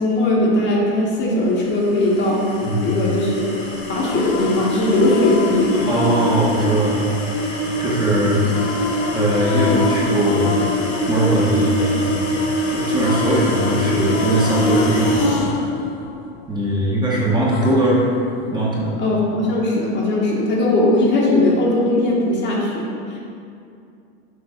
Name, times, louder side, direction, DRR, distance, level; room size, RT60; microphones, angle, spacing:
voice 1, 0.0-2.5 2.8-3.5 3.9-5.9 19.0-23.2, left 2 dB, 35° left, -3 dB, 1.2 m, -19 dB
sound 1, 1.6-15.5, equal, 80° left, 1.5 m, -24 dB
sound 2, 3.8-7.8 8.4-12.5 12.8-17.0 17.5-18.9, left 5 dB, 60° left, 0.6 m, -29 dB
voice 2, 5.9-6.9 7.8-8.4 9.1-10.7 11.1-12.3 12.7-15.3 16.5-18.0 18.5-18.9, right 1 dB, 15° right, -6 dB, 1.0 m, -20 dB
6.4 x 3.4 x 4.9 m, 2.5 s
supercardioid pair, 125°, 32 cm